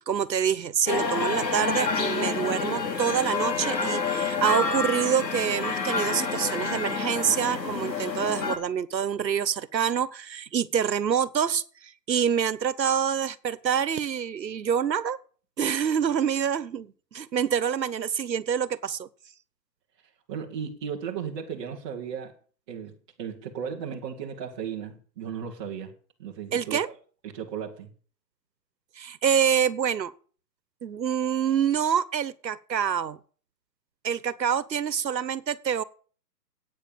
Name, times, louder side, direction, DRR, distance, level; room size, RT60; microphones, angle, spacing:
voice 1, 0.1-15.2 15.6-19.1 26.5-26.9 29.0-30.1 30.8-33.2 34.0-35.8, right 8 dB, 90° right, 1.3 m, -26 dB
sound 1, 0.9-8.6, left 4 dB, 80° left, 3.5 m, -28 dB
voice 2, 20.3-22.3 22.7-25.9 26.2-26.9 27.2-27.9, right 7 dB, 15° right, 1.4 m, -35 dB
15.5 x 9.0 x 6.9 m
hypercardioid pair, 165°, 50 cm